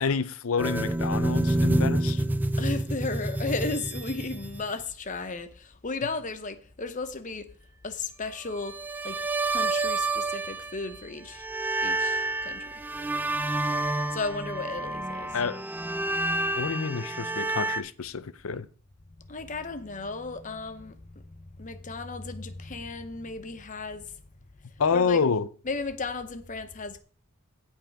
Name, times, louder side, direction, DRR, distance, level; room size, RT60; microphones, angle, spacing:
voice 1, 0.0-2.2 15.3-15.6 16.5-18.7 24.8-25.5, left 5 dB, 70° left, 0.6 m, -28 dB
sound 1, 0.6-4.8 8.6-11.0 11.3-17.8, right 2 dB, 10° right, 0.4 m, -28 dB
voice 2, 2.6-7.5 7.8-11.5 11.8-12.7 14.1-15.3 19.3-21.3 21.6-24.2 24.7-25.2 25.7-27.0, left 3 dB, 35° left, 0.9 m, -35 dB
16.0 x 5.5 x 3.5 m
head